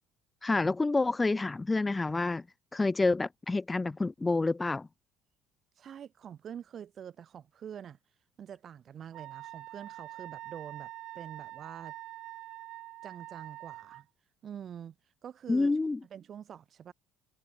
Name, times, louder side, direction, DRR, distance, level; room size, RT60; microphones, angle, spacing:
voice 1, 0.4-2.4 2.7-4.9 15.5-16.0, left 3 dB, 15° left, 0.4 m, -28 dB
voice 2, 5.8-8.0 8.4-11.9 13.0-14.1 14.4-14.9 15.2-15.8 16.1-16.9, right 9 dB, 40° right, 2.4 m, -45 dB
Wind instrument woodwind instrument, 9.1-14.0, right 15 dB, 65° right, 1.5 m, -45 dB
cardioid pair, 125°, 0 cm